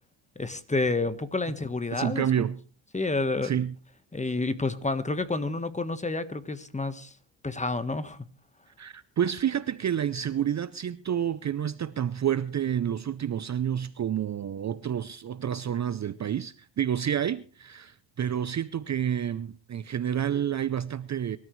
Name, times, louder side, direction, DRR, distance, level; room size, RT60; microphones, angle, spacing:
voice 1, 0.3-2.3 2.9-3.6 4.1-7.1 7.4-8.2, left 3 dB, 15° left, 1.3 m, -29 dB
voice 2, 1.9-2.6 3.4-3.7 8.8-21.4, right 9 dB, 35° right, 0.6 m, -29 dB
24.0 x 13.0 x 3.2 m
cardioid pair, 95°, 49 cm